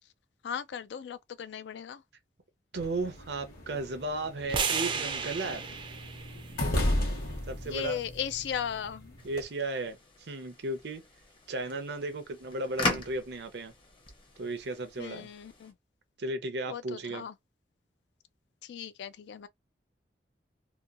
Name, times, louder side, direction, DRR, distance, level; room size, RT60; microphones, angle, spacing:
voice 1, 0.4-2.0 7.6-9.2 15.0-15.7 16.7-17.3 18.6-19.5, left 8 dB, 75° left, 0.3 m, -37 dB
sound 1, 2.7-9.4, left 1 dB, 55° left, 0.9 m, -35 dB
voice 2, 2.7-5.6 7.5-8.0 9.2-11.0 11.5-13.7 14.4-15.3 16.2-17.2, right 2 dB, 70° right, 0.6 m, -35 dB
sound 2, 4.5-8.7, right 5 dB, 30° right, 0.4 m, -35 dB
sound 3, 9.2-15.7, left 2 dB, 30° left, 0.7 m, -39 dB
2.9 x 2.2 x 2.4 m
head